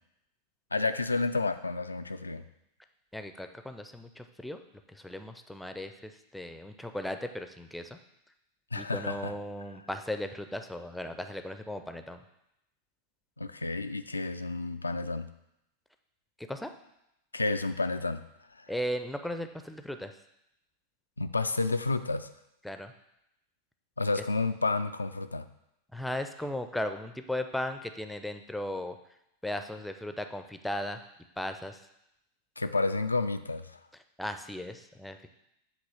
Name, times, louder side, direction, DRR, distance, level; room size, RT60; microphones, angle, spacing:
voice 1, 0.7-2.4 8.7-9.3 13.4-15.3 17.3-18.2 18.6-18.7 21.2-22.3 24.0-25.5 32.6-33.8, left 3 dB, 80° left, 9 dB, 0.3 m, -30 dB
voice 2, 3.1-4.6 4.9-8.0 8.7-12.2 16.5-16.7 18.7-20.1 22.6-22.9 25.9-28.9 29.4-31.0 31.4-31.8 34.2-35.3, left 1 dB, ahead, 7 dB, 0.5 m, -36 dB
7.9 x 2.9 x 5.5 m, 0.83 s
figure-of-eight pair, 90°, 0 cm